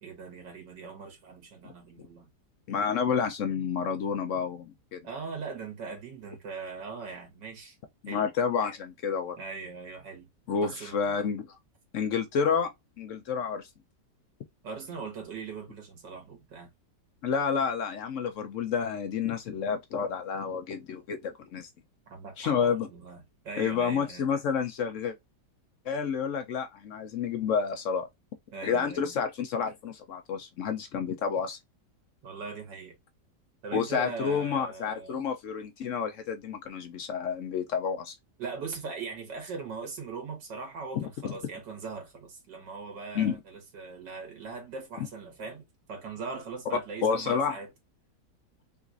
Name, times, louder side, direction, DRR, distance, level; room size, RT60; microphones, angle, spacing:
voice 1, 0.0-2.3 5.0-7.8 8.1-8.3 9.4-10.3 10.6-11.1 14.6-16.7 22.1-24.3 28.5-29.1 32.2-33.0 33.6-35.2 38.4-45.6 45.9-47.7, right 4 dB, 85° right, 1.9 m, -40 dB
voice 2, 2.7-5.0 8.0-9.4 10.5-11.6 11.9-12.7 13.0-13.7 17.2-21.7 22.4-22.9 23.6-25.2 25.9-28.1 28.6-31.6 33.7-38.1 40.9-41.3 43.1-43.4 47.0-47.6, left 6 dB, 70° left, 0.7 m, -29 dB
3.8 x 2.5 x 2.4 m
omnidirectional pair, 1.8 m